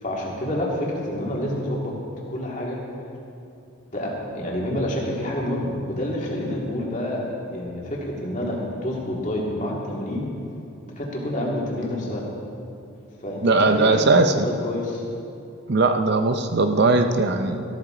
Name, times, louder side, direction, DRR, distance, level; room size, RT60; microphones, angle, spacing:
voice 1, 0.0-1.9 2.3-2.8 3.9-10.3 10.9-12.3 13.2-15.0, left 1 dB, 35° left, -3 dB, 2.3 m, -28 dB
voice 2, 13.4-14.5 15.7-17.6, right 3 dB, 50° right, 7 dB, 0.6 m, -19 dB
14.0 x 13.5 x 3.8 m, 2.7 s
head